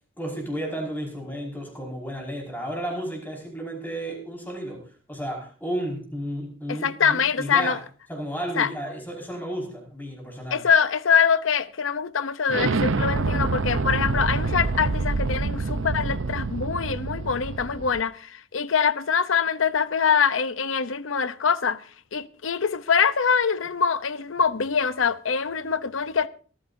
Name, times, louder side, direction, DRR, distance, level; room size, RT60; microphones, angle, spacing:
voice 1, 0.2-7.8 8.1-10.6, equal, 10° left, 5.3 m, -33 dB
voice 2, 6.7-7.8 8.6-8.7 10.5-21.8 22.1-26.3, left 6 dB, 90° left, 0.8 m, -24 dB
Explosion, 12.5-18.0, right 3 dB, 85° right, 0.7 m, -26 dB
24.5 x 14.0 x 2.7 m
head